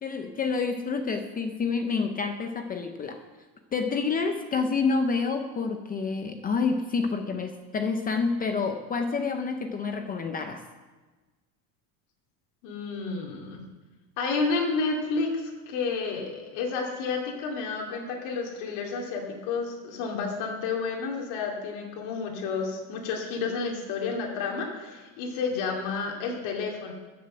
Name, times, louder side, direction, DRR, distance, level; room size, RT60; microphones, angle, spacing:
voice 1, 0.0-3.2 3.7-10.6, left 4 dB, 20° left, 6 dB, 0.5 m, -28 dB
voice 2, 12.6-13.6 14.2-26.9, left 4 dB, 65° left, 0 dB, 2.5 m, -30 dB
13.5 x 6.9 x 7.7 m, 1.3 s
cardioid pair, 165°, 44 cm